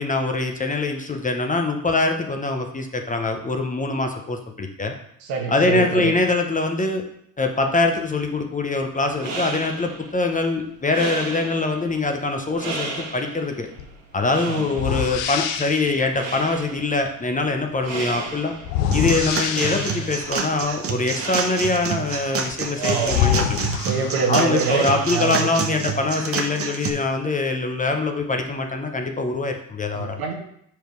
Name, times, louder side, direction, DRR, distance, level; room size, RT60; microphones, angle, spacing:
voice 1, 0.0-4.9 5.5-7.0 7.4-13.7 14.1-18.5 18.9-23.6 24.3-30.2, left 3 dB, 20° left, 4 dB, 0.9 m, -23 dB
voice 2, 5.2-6.1 14.5-14.7 22.8-23.3 23.7-25.5 29.9-30.3, right 5 dB, 65° right, 2 dB, 1.6 m, -25 dB
sound 1, 9.2-25.6, right 3 dB, 80° right, 1.9 m, -36 dB
sound 2, 13.8-14.0 14.7-16.0 18.6-20.2 22.5-22.6 23.0-24.7, left 10 dB, 85° left, 0.7 m, -25 dB
sound 3, 18.9-26.9, right 5 dB, 35° right, 0.9 m, -28 dB
5.1 x 4.9 x 4.6 m, 0.71 s
hypercardioid pair, 70°, 40 cm